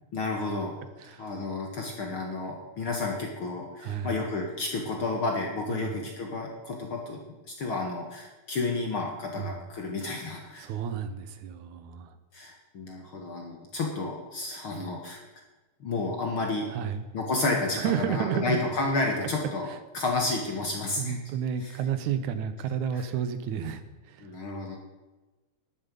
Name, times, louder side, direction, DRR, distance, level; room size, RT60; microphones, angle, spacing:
voice 1, 0.1-0.8 1.2-10.7 12.3-15.2 15.8-16.7 17.1-19.7 19.9-21.2 21.6-21.8 22.9-23.1 24.2-24.8, left 3 dB, 50° left, 1 dB, 2.3 m, -31 dB
voice 2, 1.0-1.3 3.8-4.2 5.7-6.1 9.4-9.6 10.6-12.2 16.7-17.0 17.8-18.6 21.0-24.3, right 8 dB, 80° right, 10 dB, 2.4 m, -31 dB
12.5 x 11.0 x 5.4 m, 1.2 s
omnidirectional pair, 3.4 m